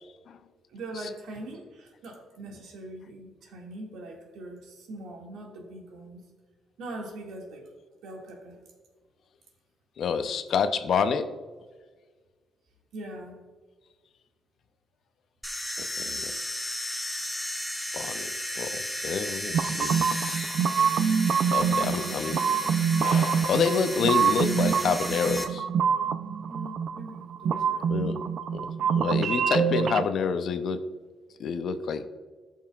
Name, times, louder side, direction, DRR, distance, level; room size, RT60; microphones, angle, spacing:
voice 1, 0.7-6.2 6.8-7.7 8.0-8.6 12.9-13.4 21.8-22.6 26.5-27.9, right 1 dB, 80° right, 0 dB, 2.0 m, -42 dB
voice 2, 10.0-11.4 15.8-16.4 17.9-20.0 21.5-22.4 23.0-25.7 27.9-28.2 28.5-30.9 31.4-32.1, left 6 dB, 65° left, 10 dB, 0.6 m, -28 dB
sound 1, 15.4-25.4, equal, 5° left, 1.2 m, -34 dB
sound 2, 19.5-30.0, right 7 dB, 65° right, 0.4 m, -26 dB
14.5 x 5.6 x 2.4 m, 1.4 s
cardioid pair, 90°, 0 cm